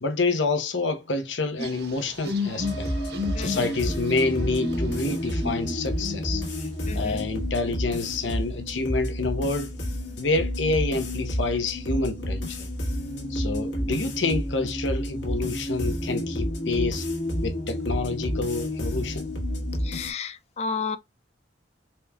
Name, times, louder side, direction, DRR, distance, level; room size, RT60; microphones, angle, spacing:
voice 1, 0.0-2.9 3.4-6.4 6.9-9.7 10.2-12.7 13.3-17.0 17.4-19.3, left 3 dB, 85° left, 0.9 m, -28 dB
sound 1, 1.6-6.4 6.8-7.3, left 3 dB, 60° right, 0.8 m, -34 dB
sound 2, 2.6-20.1, equal, 70° left, 1.3 m, -30 dB
voice 2, 3.3-3.8 6.9-7.2 19.8-21.0, left 5 dB, 35° left, 0.3 m, -32 dB
4.2 x 3.4 x 2.2 m
head